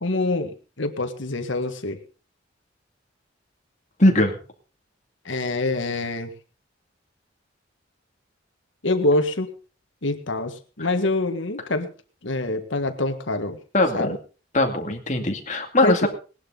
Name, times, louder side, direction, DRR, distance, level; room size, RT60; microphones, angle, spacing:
voice 1, 0.0-2.0 5.3-6.3 8.8-9.5 10.0-11.9 12.2-13.6 13.9-14.2 15.8-16.1, left 2 dB, 75° left, 7 dB, 1.7 m, -25 dB
voice 2, 4.0-4.4 13.7-14.1 14.5-16.1, left 1 dB, 35° left, 3 dB, 2.3 m, -20 dB
19.0 x 11.5 x 3.9 m, 0.35 s
head